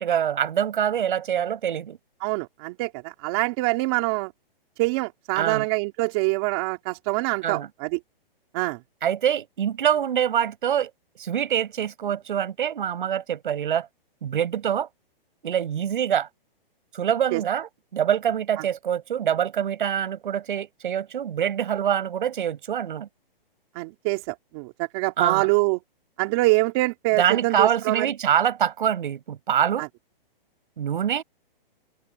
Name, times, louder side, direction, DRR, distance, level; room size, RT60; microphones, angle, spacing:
voice 1, 0.0-2.0 5.4-5.7 7.4-7.7 9.0-10.9 11.2-13.9 14.2-14.9 15.4-16.3 16.9-23.1 25.2-25.5 27.2-29.9 30.8-31.2, right 9 dB, 60° right, 7.9 m, -25 dB
voice 2, 2.2-4.3 4.8-8.0 8.5-8.8 17.3-17.4 23.7-25.8 26.2-28.1 29.8-29.9, right 24 dB, 25° right, 2.7 m, -25 dB
hypercardioid pair, 165°, 29 cm